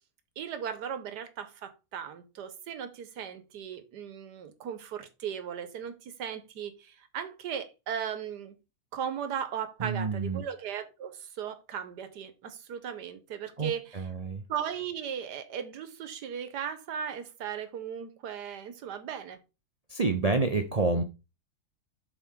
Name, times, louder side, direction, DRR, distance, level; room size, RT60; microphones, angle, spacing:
voice 1, 0.4-8.6 8.9-14.1 14.5-19.4, right 8 dB, 85° right, 1.6 m, -37 dB
voice 2, 9.8-10.4 13.6-14.4 19.9-21.0, right 3 dB, 60° right, 0.4 m, -28 dB
7.4 x 4.7 x 3.7 m
omnidirectional pair, 1.8 m